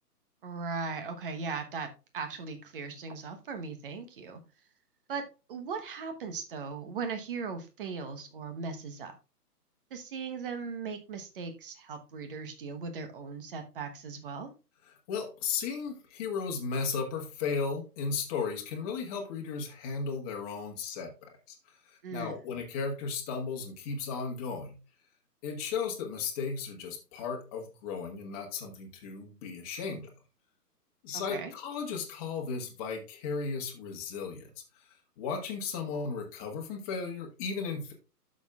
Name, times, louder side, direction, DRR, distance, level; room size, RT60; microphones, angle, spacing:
voice 1, 0.4-4.4 5.1-5.2 5.5-9.1 9.9-14.5 22.0-22.4 31.3-31.5, right 5 dB, 35° right, 7 dB, 1.2 m, -38 dB
voice 2, 15.1-21.1 21.5-24.7 25.4-30.1 31.0-34.5 35.2-37.9, left 5 dB, 25° left, 2 dB, 1.4 m, -35 dB
11.5 x 6.4 x 2.4 m, 0.31 s
figure-of-eight pair, 135°, 48 cm